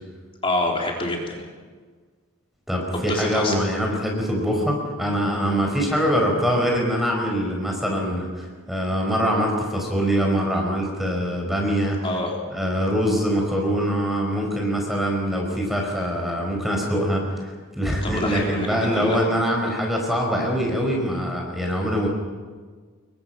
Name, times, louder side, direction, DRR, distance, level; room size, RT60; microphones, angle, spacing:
voice 1, 0.4-1.4 2.9-3.6 12.0-12.4 18.0-19.2, left 1 dB, 25° left, -1 dB, 3.7 m, -27 dB
voice 2, 2.7-12.0 12.5-22.1, equal, ahead, 0 dB, 5.0 m, -23 dB
29.0 x 23.0 x 5.9 m, 1.5 s
head